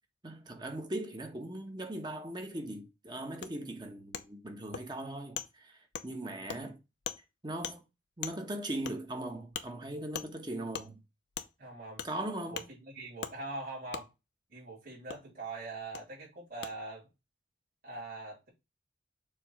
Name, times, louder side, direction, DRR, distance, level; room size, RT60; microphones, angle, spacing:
voice 1, 0.2-6.8 7.4-7.8 8.2-11.0 12.0-12.7, right 1 dB, 25° right, 1.2 m, -39 dB
Wood, 3.4-3.5 4.1-4.2 4.7-4.8 5.3-5.5 5.9-6.1 6.5-6.6 7.0-7.2 7.6-7.7 8.2-8.3 8.8-9.0 9.5-9.7 10.1-10.3 10.7-10.9 11.3-11.5 12.0-12.1 12.5-12.7 13.2-13.3 13.9-14.0 15.1-15.2 15.9-16.0 16.6-16.7, left 7 dB, 65° left, 0.7 m, -39 dB
voice 2, 11.6-12.1 12.5-14.1 14.5-17.1 17.8-18.5, right 2 dB, 45° right, 3.7 m, -42 dB
7.0 x 3.1 x 4.8 m
head